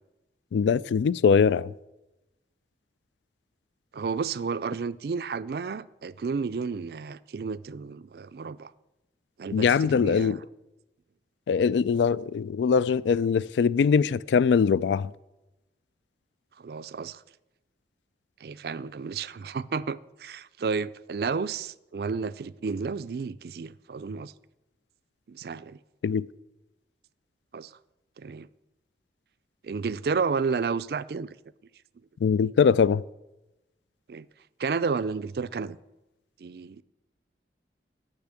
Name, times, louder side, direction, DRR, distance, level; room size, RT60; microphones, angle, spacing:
voice 1, 0.5-1.7 9.5-10.4 11.5-15.1 26.0-26.2 32.2-33.0, left 6 dB, 80° left, 0.3 m, -22 dB
voice 2, 3.9-8.7 9.4-10.4 16.6-17.2 18.4-24.3 25.3-25.8 27.5-27.7 28.2-28.5 29.6-31.4 34.1-34.3 34.6-35.8 36.4-36.8, right 5 dB, 60° right, 0.4 m, -31 dB
10.5 x 5.8 x 8.1 m
head